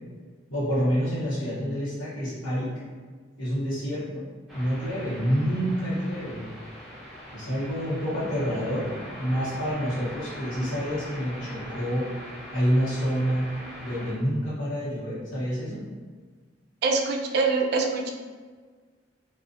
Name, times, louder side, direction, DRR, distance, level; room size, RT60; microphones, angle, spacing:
voice 1, 0.5-2.8 3.4-4.2 4.5-6.4 7.3-8.9 9.2-12.1 12.5-13.5 13.8-15.8, equal, 85° left, -8 dB, 1.0 m, -27 dB
sound 1, 4.5-14.1, equal, ahead, 0.5 m, -42 dB
voice 2, 16.8-18.1, right 4 dB, 55° right, 3 dB, 0.3 m, -24 dB
2.4 x 2.3 x 2.5 m, 1.5 s
head